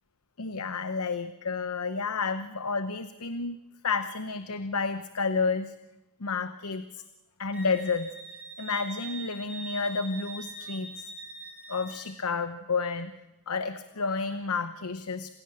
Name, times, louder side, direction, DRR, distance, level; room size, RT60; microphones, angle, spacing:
voice 1, 0.4-3.6 3.8-5.7 6.2-7.0 7.4-8.1 8.6-11.1 11.7-13.1 13.5-15.3, left 4 dB, 85° left, 11 dB, 0.9 m, -30 dB
Wind instrument woodwind instrument, 7.5-12.1, right 3 dB, 5° right, 3.6 m, -43 dB
27.5 x 16.5 x 7.7 m, 1.0 s
head